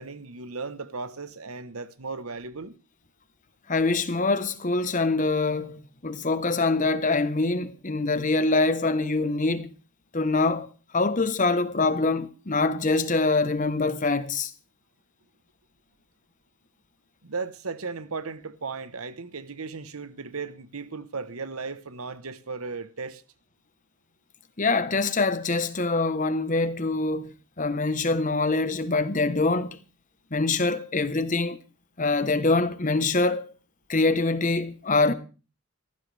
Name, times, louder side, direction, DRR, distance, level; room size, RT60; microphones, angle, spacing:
voice 1, 0.0-2.7 17.2-23.2, right 4 dB, 85° right, 1.1 m, -36 dB
voice 2, 3.7-9.7 10.1-14.5 24.6-29.8 30.3-31.6 32.0-33.5 33.9-35.1, left 3 dB, 35° left, 1.1 m, -24 dB
18.0 x 15.0 x 3.4 m
head